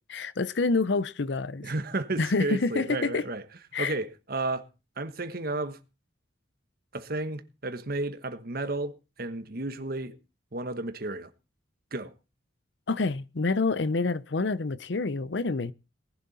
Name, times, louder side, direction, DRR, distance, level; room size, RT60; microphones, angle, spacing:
voice 1, 0.1-1.7 2.2-3.3 3.7-3.9 12.9-15.7, left 3 dB, 65° left, 0.7 m, -27 dB
voice 2, 1.6-3.4 3.8-4.7 5.0-5.8 6.9-10.2 10.5-11.3 11.9-12.1, right 2 dB, 50° right, 1.3 m, -32 dB
19.0 x 11.0 x 4.2 m
head